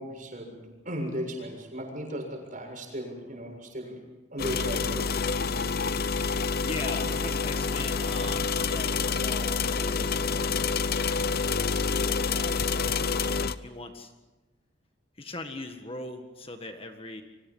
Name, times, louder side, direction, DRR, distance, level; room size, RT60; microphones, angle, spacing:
voice 1, 0.0-4.0 4.3-5.1, equal, 45° right, 2 dB, 7.1 m, -36 dB
Coffee machine at the office, 4.4-13.5, left 5 dB, 50° left, 0.8 m, -28 dB
voice 2, 6.4-10.9 11.4-13.0 13.6-14.1 15.1-17.2, left 2 dB, 30° left, 5 dB, 1.7 m, -41 dB
29.5 x 24.5 x 5.5 m, 1.1 s
head